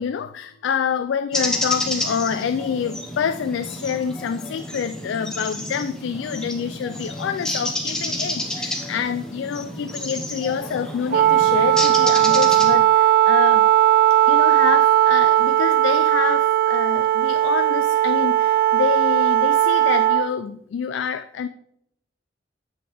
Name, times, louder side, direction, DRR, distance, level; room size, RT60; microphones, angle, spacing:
voice 1, 0.0-13.7 14.3-21.5, left 7 dB, 70° left, 10 dB, 0.3 m, -27 dB
sound 1, 1.3-12.8, left 1 dB, 5° left, 0.9 m, -30 dB
Wind instrument woodwind instrument, 11.1-20.3, right 12 dB, 50° right, 0.4 m, -17 dB
7.7 x 6.0 x 3.3 m, 0.73 s
head